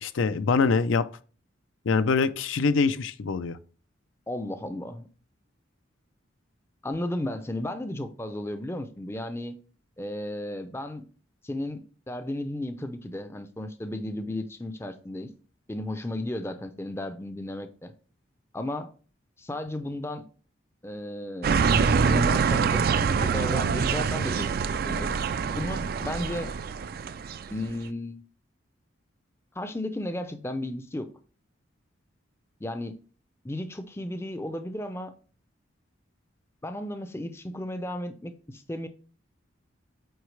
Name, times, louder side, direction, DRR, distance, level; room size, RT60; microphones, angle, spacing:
voice 1, 0.0-1.1 1.9-3.6, left 4 dB, 75° left, 0.5 m, -24 dB
voice 2, 4.3-5.1 6.8-9.6 10.0-11.0 11.4-15.3 15.7-17.9 18.5-18.9 19.4-20.3 20.8-25.2 25.6-26.5 27.5-28.2 29.5-31.1 32.6-33.0 33.4-35.1 36.6-38.9, left 1 dB, 10° left, 0.5 m, -34 dB
sound 1, 21.4-27.6, right 5 dB, 50° right, 0.3 m, -25 dB
7.9 x 4.5 x 3.2 m
head